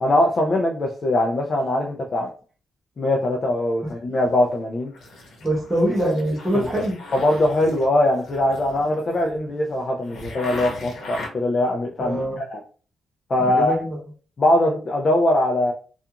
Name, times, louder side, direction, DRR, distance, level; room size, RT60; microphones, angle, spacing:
voice 1, 0.0-2.3 3.0-4.9 6.5-6.7 7.1-12.2 12.5-12.6 13.3-13.8 14.4-15.7, left 1 dB, 35° left, 0 dB, 0.4 m, -21 dB
sound 1, 3.9-4.6 4.9-11.3, left 2 dB, 65° left, 0.9 m, -39 dB
voice 2, 5.4-6.9 12.0-12.4 13.4-14.0, right 1 dB, 10° right, -7 dB, 0.7 m, -24 dB
2.4 x 2.3 x 2.8 m, 0.39 s
wide cardioid pair, 170°, 0 cm